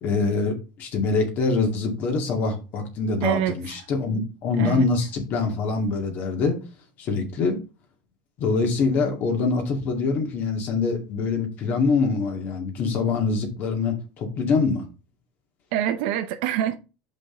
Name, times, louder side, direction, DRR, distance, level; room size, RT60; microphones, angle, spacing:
voice 1, 0.0-6.6 7.0-7.6 8.4-14.9, left 4 dB, 45° left, 2.2 m, -24 dB
voice 2, 3.2-3.8 4.6-4.9 15.7-16.8, right 11 dB, 75° right, 0.7 m, -25 dB
6.5 x 5.3 x 3.8 m
cardioid pair, 145°, 4 cm